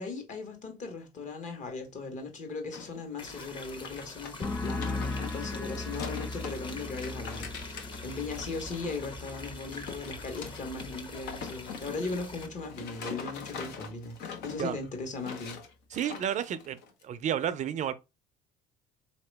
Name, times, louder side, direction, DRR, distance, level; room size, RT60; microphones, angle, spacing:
voice 1, 0.0-15.6, left 3 dB, 45° left, 1.5 m, -38 dB
sound 1, 2.7-3.0 3.3-6.6 6.9-9.4 9.7-17.0, left 6 dB, 75° left, 1.0 m, -43 dB
sound 2, 3.2-12.5, left 2 dB, 30° left, 1.0 m, -45 dB
sound 3, 4.4-11.9 12.2-12.7, left 2 dB, 10° left, 0.4 m, -39 dB
voice 2, 15.9-16.8 17.0-18.0, right 9 dB, 45° right, 0.4 m, -31 dB
4.1 x 2.9 x 3.3 m
cardioid pair, 105°, 17 cm